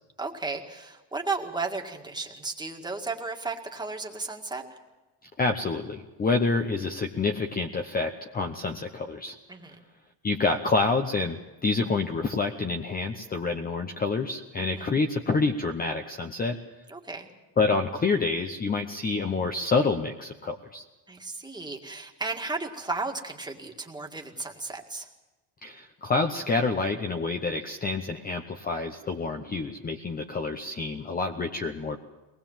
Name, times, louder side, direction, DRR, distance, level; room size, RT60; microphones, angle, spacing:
voice 1, 0.2-4.7 9.5-9.8 14.6-14.9 16.9-17.3 21.1-25.1, right 3 dB, 10° right, 2 dB, 2.0 m, -34 dB
voice 2, 5.4-9.4 10.2-16.6 17.6-20.8 25.6-32.0, left 3 dB, 20° left, 5 dB, 0.9 m, -28 dB
22.5 x 19.5 x 7.4 m, 1.1 s
cardioid pair, 150°, 43 cm